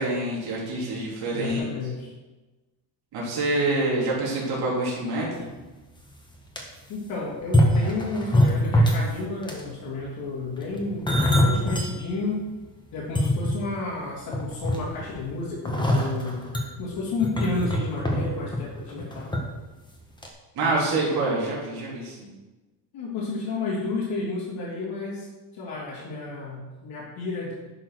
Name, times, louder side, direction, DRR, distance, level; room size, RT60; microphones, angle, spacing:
voice 1, 0.0-1.7 3.1-5.4 20.6-22.3, right 2 dB, 70° right, -5 dB, 3.5 m, -26 dB
voice 2, 1.3-2.1 6.9-12.4 12.9-16.5 16.8-19.4 20.6-21.2 22.9-25.3 25.5-27.5, left 3 dB, 75° left, -8 dB, 3.0 m, -31 dB
sound 1, 5.7-5.8 6.2-6.6 7.4-9.1 9.4-9.7 10.6-11.9 12.4-12.5 13.0-14.0 14.3-15.1 15.6-19.4 19.7-19.9 20.2-20.3, equal, 10° left, 1.6 m, -23 dB
11.0 x 5.7 x 6.4 m, 1.2 s
cardioid pair, 140°, 39 cm